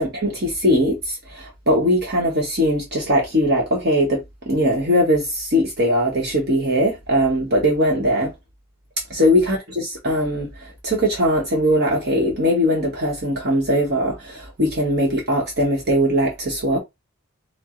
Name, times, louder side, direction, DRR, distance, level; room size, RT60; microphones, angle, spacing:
voice 1, 0.0-4.2 4.5-8.3 9.1-16.8, equal, 45° right, 1.0 m, -20 dB
4.5 x 2.1 x 3.7 m
head